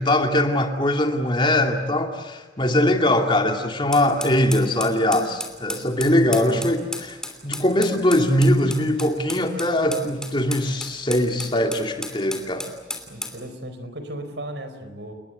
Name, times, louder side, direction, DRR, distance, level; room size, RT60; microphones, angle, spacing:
voice 1, 0.0-7.2 7.4-12.7, left 1 dB, 25° left, 4 dB, 2.4 m, -21 dB
sound 1, 3.9-13.4, left 1 dB, 5° left, 3.0 m, -34 dB
voice 2, 6.3-6.6 13.1-15.1, right 1 dB, 80° right, 9 dB, 4.7 m, -36 dB
29.5 x 20.5 x 8.0 m, 1.2 s
head